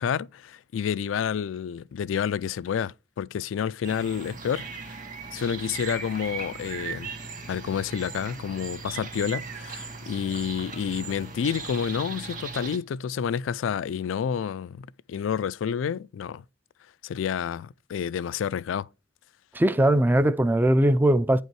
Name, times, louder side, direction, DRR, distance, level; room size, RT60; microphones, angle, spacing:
voice 1, 0.0-5.0 5.3-7.1 7.5-16.4 17.0-18.9, left 7 dB, 85° left, 0.3 m, -29 dB
sound 1, 3.8-12.8, right 5 dB, 45° right, 1.8 m, -38 dB
voice 2, 19.5-21.4, right 1 dB, 10° right, 0.3 m, -20 dB
8.6 x 5.3 x 4.6 m
head